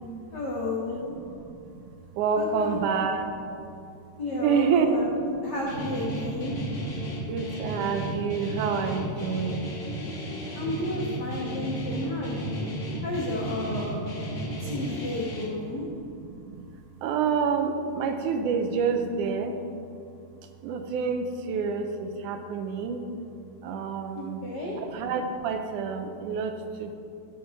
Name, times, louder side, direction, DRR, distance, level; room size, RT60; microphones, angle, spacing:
voice 1, 0.3-1.2 2.3-2.8 4.2-5.1 5.4-6.6 10.5-14.0 14.6-15.9 24.1-24.8, left 2 dB, 80° left, -3 dB, 0.9 m, -32 dB
voice 2, 1.3-3.7 4.4-4.9 6.7-9.7 12.0-12.2 12.6-13.0 14.1-14.7 15.8-15.9 16.2-16.7 17.0-19.6 20.6-23.1 23.6-24.5 24.8-26.9, right 6 dB, 75° right, 6 dB, 2.1 m, -29 dB
Guitar, 5.7-15.4, right 1 dB, 35° left, 2.6 m, -34 dB
15.0 x 6.0 x 4.7 m, 2.5 s
omnidirectional pair, 3.8 m